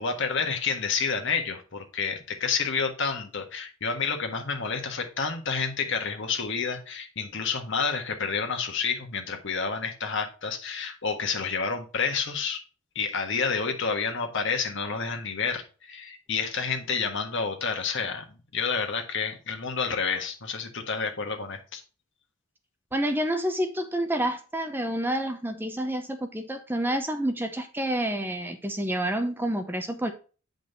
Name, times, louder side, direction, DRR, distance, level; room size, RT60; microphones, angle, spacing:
voice 1, 0.0-12.6 12.9-18.3 18.5-21.8, left 5 dB, 60° left, 1.5 m, -29 dB
voice 2, 22.9-30.1, right 1 dB, 10° right, 0.7 m, -28 dB
8.7 x 5.3 x 4.0 m
head